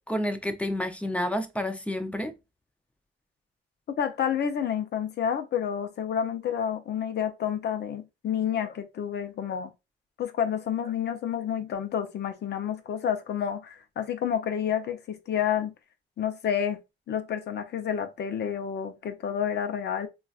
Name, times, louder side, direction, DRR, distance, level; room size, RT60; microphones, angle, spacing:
voice 1, 0.0-2.3, left 1 dB, 5° left, 0.6 m, -30 dB
voice 2, 4.0-9.7 10.2-15.7 16.2-16.8 17.1-20.1, left 8 dB, 55° left, 0.6 m, -29 dB
3.8 x 2.4 x 2.4 m
cardioid pair, 90°, 20 cm